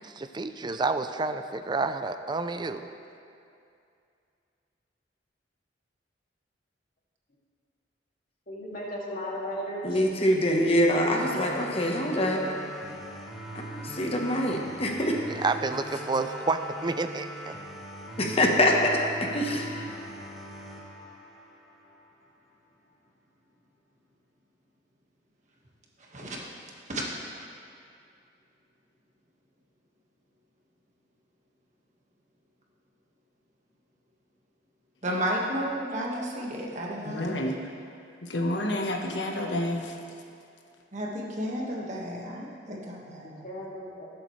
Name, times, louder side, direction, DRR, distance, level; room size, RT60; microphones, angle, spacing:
voice 1, 0.0-2.9 15.3-17.6, right 3 dB, 25° right, 9 dB, 0.4 m, -29 dB
voice 2, 8.5-10.0 43.4-44.1, equal, 50° left, -5 dB, 2.4 m, -35 dB
voice 3, 9.8-12.4 13.5-15.4 18.2-19.9, left 1 dB, 35° left, 0 dB, 1.1 m, -25 dB
sound 1, 11.2-22.2, right 1 dB, ahead, 1.3 m, -41 dB
voice 4, 35.0-37.2 40.9-43.5, equal, 40° right, -3 dB, 1.6 m, -32 dB
voice 5, 37.0-37.7 38.2-40.0, left 1 dB, 85° left, 1 dB, 1.3 m, -29 dB
21.0 x 7.9 x 3.2 m, 2.5 s
head